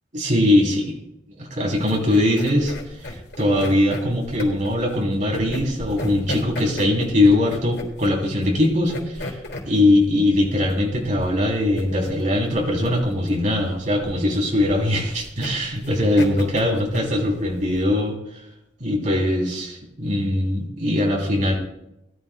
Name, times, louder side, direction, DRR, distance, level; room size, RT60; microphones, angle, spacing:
voice 1, 0.1-0.9 1.4-2.7 3.0-9.3 9.6-18.4 18.8-21.6, left 1 dB, 45° right, -1 dB, 3.3 m, -21 dB
sound 1, 1.7-17.9, left 1 dB, 70° left, 3.8 m, -35 dB
20.5 x 13.0 x 2.3 m, 0.84 s
head